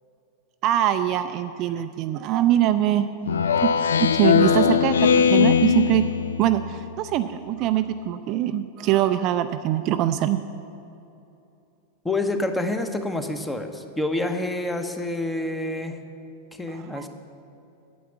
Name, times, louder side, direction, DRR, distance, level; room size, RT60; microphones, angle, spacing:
voice 1, 0.6-3.1 3.6-3.7 4.0-6.1 6.4-10.4 16.9-17.0, right 12 dB, 40° right, 10 dB, 0.4 m, -23 dB
Speech synthesizer, 3.3-6.8, left 7 dB, 65° left, 0.4 m, -20 dB
voice 2, 12.0-16.0 16.5-17.1, left 2 dB, 10° left, 7 dB, 0.9 m, -27 dB
9.2 x 8.6 x 8.1 m, 2.8 s
figure-of-eight pair, 90°, 0 cm